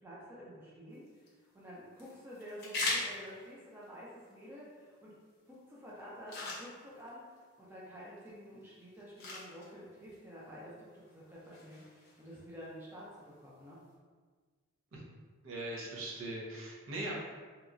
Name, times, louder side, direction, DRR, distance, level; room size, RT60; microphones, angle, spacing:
voice 1, 0.0-5.1 5.5-7.3 7.6-13.8, equal, 10° right, -7 dB, 0.4 m, -50 dB
sound 1, 0.9-13.9, left 2 dB, 50° left, 0.7 m, -45 dB
voice 2, 15.4-17.2, right 1 dB, 65° right, -4 dB, 0.6 m, -40 dB
2.9 x 2.3 x 2.5 m, 1.5 s
head